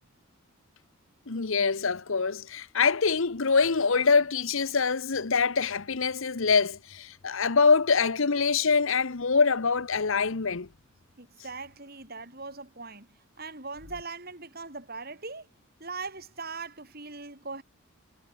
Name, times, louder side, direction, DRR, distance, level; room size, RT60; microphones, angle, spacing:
voice 1, 1.3-10.7, left 5 dB, 65° left, 0.9 m, -24 dB
voice 2, 11.2-15.5 15.8-17.6, right 4 dB, 45° right, 4.4 m, -40 dB
head